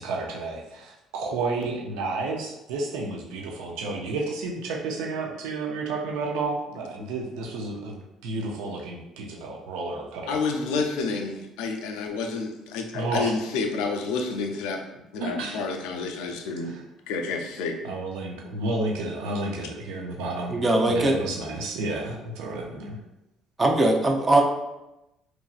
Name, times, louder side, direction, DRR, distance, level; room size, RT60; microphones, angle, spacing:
voice 1, 0.0-10.4 12.9-13.4 15.2-15.6 16.7-16.8 17.8-20.6 20.8-23.0, right 3 dB, 85° right, 0 dB, 0.5 m, -31 dB
voice 2, 10.3-14.8 15.1-16.8 17.1-17.8, left 4 dB, 90° left, 4 dB, 0.4 m, -29 dB
voice 3, 20.5-21.1 23.6-24.4, right 2 dB, 30° right, 2 dB, 0.5 m, -20 dB
3.0 x 2.5 x 2.3 m, 0.94 s
cardioid pair, 95°, 0 cm